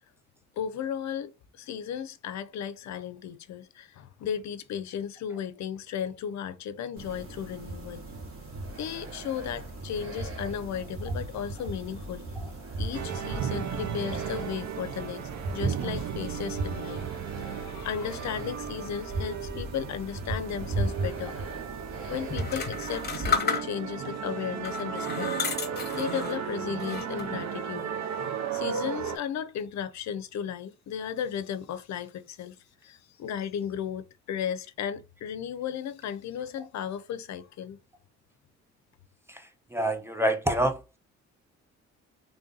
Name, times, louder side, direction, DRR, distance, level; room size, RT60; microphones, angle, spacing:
voice 1, 0.6-8.0 8.8-12.2 12.8-15.2 15.5-21.4 22.1-25.7 25.9-37.8, left 8 dB, 65° left, 0.6 m, -35 dB
sound 1, 7.0-23.4, right 2 dB, 50° right, 1.6 m, -37 dB
sound 2, 12.9-29.2, right 8 dB, 65° right, 0.6 m, -35 dB
sound 3, 22.3-24.0 24.6-26.4 26.8-27.4, left 6 dB, 35° left, 1.1 m, -32 dB
voice 2, 39.3-40.8, right 1 dB, 10° right, 0.5 m, -27 dB
3.2 x 2.6 x 3.8 m
cardioid pair, 90°, 30 cm